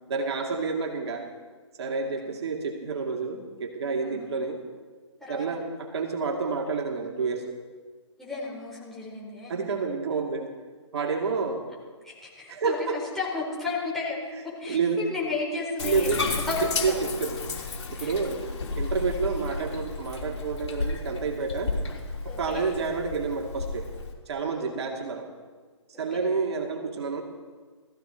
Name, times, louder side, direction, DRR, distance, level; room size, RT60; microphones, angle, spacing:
voice 1, 0.1-1.3 1.8-4.6 5.3-7.5 9.5-10.5 10.9-11.6 12.5-13.0 14.7-15.1 15.8-16.2 16.8-17.4 17.9-18.4 18.7-21.7 22.2-23.9 24.3-25.3 26.0-27.2, right 4 dB, 55° right, 1 dB, 2.2 m, -29 dB
voice 2, 2.0-2.4 4.0-4.3 5.2-5.5 8.2-9.6 12.0-12.8 13.1-17.1 18.0-18.1 22.3-22.6 24.5-24.8 25.9-26.3, left 3 dB, ahead, -6 dB, 4.2 m, -34 dB
Bathtub (filling or washing), 15.8-24.1, left 4 dB, 60° left, 3.2 m, -33 dB
19.0 x 14.5 x 4.5 m, 1.5 s
figure-of-eight pair, 140°, 16 cm